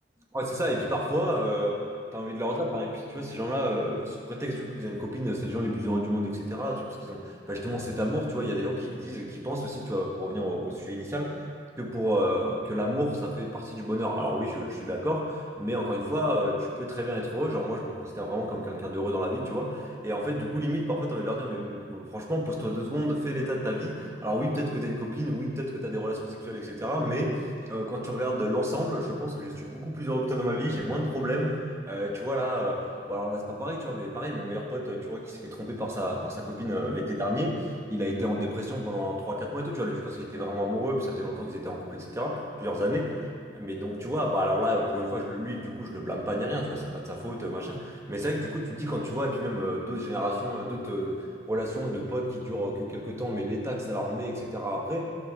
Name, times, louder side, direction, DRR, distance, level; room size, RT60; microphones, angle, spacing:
voice 1, 0.3-1.8 2.1-11.4 11.8-27.4 27.7-31.6 31.9-43.3 43.5-55.1, equal, 15° right, -1 dB, 1.5 m, -30 dB
12.5 x 11.5 x 3.8 m, 2.2 s
head